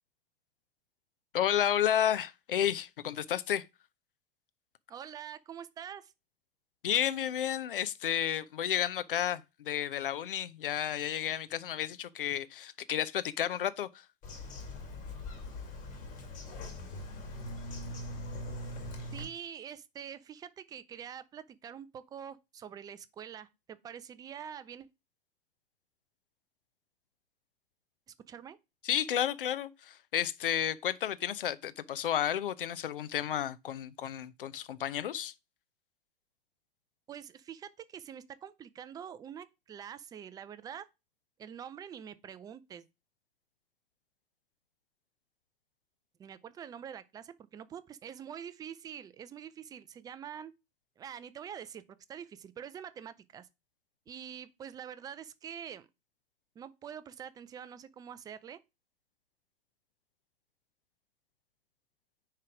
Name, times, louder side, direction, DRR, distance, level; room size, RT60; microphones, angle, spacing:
voice 1, 1.3-3.6 6.8-14.0 28.8-35.3, left 10 dB, 65° left, 0.7 m, -32 dB
voice 2, 4.9-6.1 19.1-24.9 28.1-28.6 37.1-40.9 41.4-42.8 46.2-50.5 51.0-51.8 52.1-53.5 54.1-55.9 56.6-58.6, right 8 dB, 15° right, 0.4 m, -45 dB
Bird vocalization bird call bird song, 14.2-19.3, left 1 dB, 25° left, 2.7 m, -41 dB
9.4 x 3.3 x 4.9 m
figure-of-eight pair, 90°, 30 cm